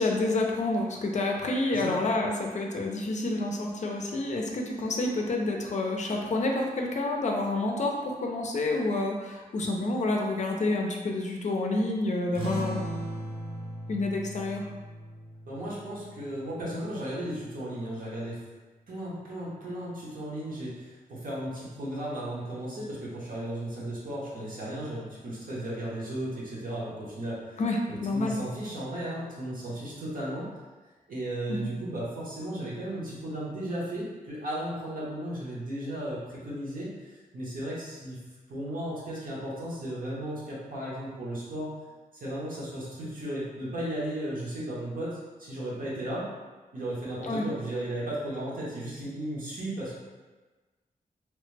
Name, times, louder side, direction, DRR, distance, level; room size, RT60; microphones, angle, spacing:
voice 1, 0.0-12.8 13.9-14.6 27.6-28.4 31.5-31.7 47.2-47.4, left 2 dB, 50° left, 1 dB, 0.4 m, -28 dB
voice 2, 1.7-2.0 15.5-18.4 18.9-27.6 27.9-30.5 31.1-38.2 38.5-41.7 42.1-46.3 46.7-49.9, right 1 dB, 65° right, -7 dB, 1.0 m, -35 dB
sound 1, 12.3-17.4, right 1 dB, 35° right, 0.8 m, -38 dB
3.1 x 2.0 x 3.2 m, 1.3 s
wide cardioid pair, 120°, 15 cm